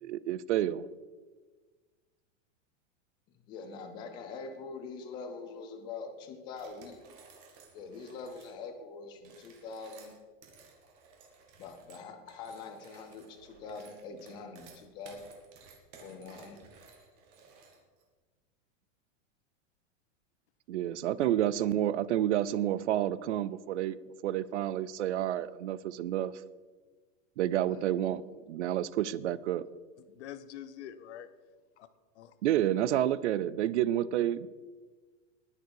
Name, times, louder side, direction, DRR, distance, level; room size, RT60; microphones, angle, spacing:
voice 1, 0.0-0.9 20.7-26.3 27.4-28.2 28.5-29.7 32.4-34.5, right 12 dB, 65° right, 0.6 m, -29 dB
voice 2, 3.5-7.0 7.7-10.1 11.6-15.2 16.0-16.6 27.6-27.8, left 4 dB, 10° left, 0.5 m, -44 dB
sound 1, 6.5-8.6 9.1-18.0, right 4 dB, 30° right, 2.0 m, -56 dB
voice 3, 21.2-21.6 30.0-31.3 31.8-31.9 32.1-32.3, left 10 dB, 60° left, 0.9 m, -46 dB
20.0 x 6.7 x 4.7 m
supercardioid pair, 180°, 38 cm